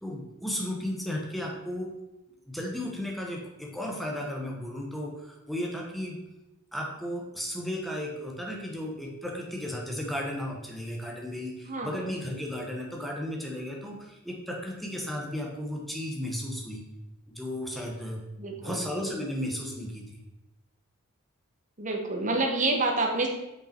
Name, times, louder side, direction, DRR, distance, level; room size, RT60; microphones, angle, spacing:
voice 1, 0.0-1.9 2.5-6.2 6.7-16.8 17.3-18.2 18.5-20.2, left 1 dB, ahead, -1 dB, 1.1 m, -34 dB
voice 2, 11.7-12.1 18.4-18.8 21.8-23.3, right 2 dB, 35° right, 1 dB, 1.1 m, -28 dB
6.0 x 5.4 x 4.4 m, 0.95 s
head